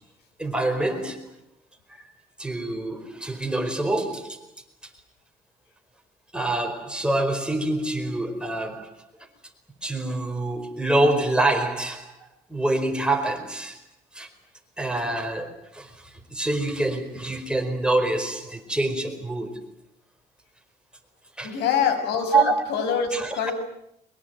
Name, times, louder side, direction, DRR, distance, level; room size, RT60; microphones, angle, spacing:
voice 1, 0.4-1.3 1.9-2.0 2.4-4.4 6.3-9.0 9.8-12.1 12.5-13.8 14.1-14.3 14.8-19.6 21.4-21.6 22.3-22.6 23.1-23.4, right 2 dB, 5° right, 4.6 m, -26 dB
voice 2, 21.4-23.5, left 7 dB, 85° left, 6.0 m, -25 dB
23.0 x 22.5 x 9.2 m
cardioid pair, 110°, 17 cm